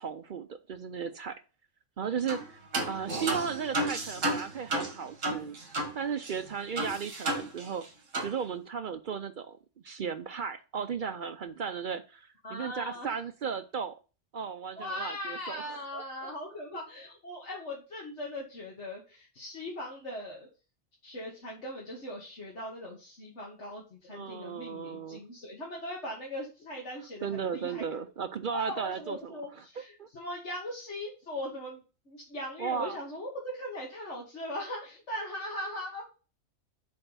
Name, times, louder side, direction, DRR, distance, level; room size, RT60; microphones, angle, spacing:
voice 1, 0.0-1.4 2.0-2.4 2.9-7.8 8.2-9.6 9.8-13.9 14.3-16.3 16.7-16.8 24.1-25.2 27.2-30.1 32.6-33.0, right 6 dB, 55° right, 0.5 m, -35 dB
sound 1, 2.3-2.5 2.7-5.9 6.2-6.3 6.8-7.9 8.1-8.3, right 2 dB, 75° right, 2.1 m, -32 dB
voice 2, 12.4-13.1 14.8-20.5 21.0-27.8 28.5-36.0, left 1 dB, 65° left, 2.0 m, -39 dB
8.0 x 3.5 x 5.6 m
omnidirectional pair, 1.3 m